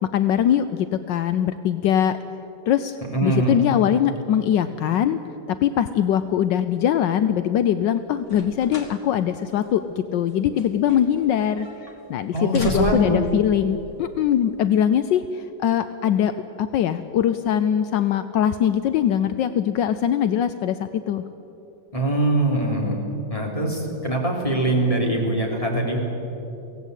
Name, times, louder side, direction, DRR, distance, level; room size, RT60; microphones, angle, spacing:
voice 1, 0.0-2.2 2.7-3.0 3.2-5.2 5.5-11.7 12.1-21.2, left 9 dB, 75° left, 11 dB, 1.3 m, -22 dB
voice 2, 3.1-3.6 12.3-13.2 21.9-23.0 23.3-26.0, right 2 dB, 15° left, -1 dB, 3.6 m, -22 dB
sound 1, 8.2-9.0 9.4-9.5 10.3-11.3 11.6-11.9 12.4-13.3 14.2-14.3, equal, 40° left, 2.4 m, -33 dB
23.5 x 17.5 x 8.2 m, 3.0 s
omnidirectional pair, 2.0 m